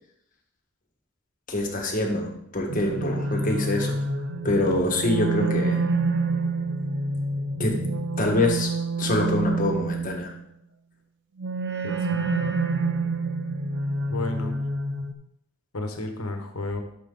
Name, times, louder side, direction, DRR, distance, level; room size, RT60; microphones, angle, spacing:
voice 1, 1.5-4.0 4.4-5.8 7.6-7.8 8.2-8.7 9.0-10.3, left 1 dB, 40° left, 1 dB, 1.6 m, -25 dB
sound 1, 2.7-10.3 11.4-15.1, right 3 dB, 55° right, 0.7 m, -27 dB
voice 2, 11.8-12.5 14.1-14.6 15.7-16.8, left 2 dB, 90° left, 5 dB, 1.3 m, -32 dB
11.5 x 6.4 x 3.9 m, 0.75 s
head